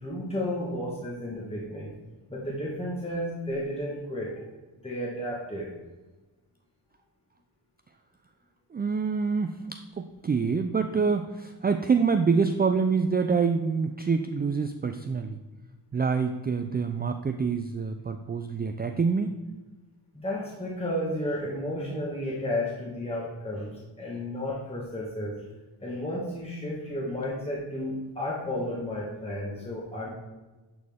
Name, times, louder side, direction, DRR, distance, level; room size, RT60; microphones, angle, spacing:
voice 1, 0.0-1.9 2.3-4.4 4.8-5.7 20.1-25.3 25.8-30.1, left 1 dB, 15° left, -5 dB, 1.5 m, -32 dB
voice 2, 8.7-15.4 15.9-19.4, right 5 dB, 25° right, 7 dB, 0.3 m, -26 dB
11.0 x 4.2 x 3.6 m, 1.2 s
wide cardioid pair, 90°, 43 cm